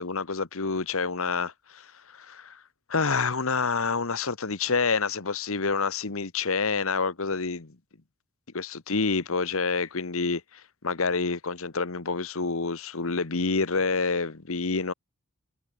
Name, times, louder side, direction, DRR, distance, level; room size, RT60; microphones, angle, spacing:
voice 1, 0.0-2.6 2.9-7.8 8.5-14.9, left 4 dB, 65° left, 1.2 m, -28 dB
head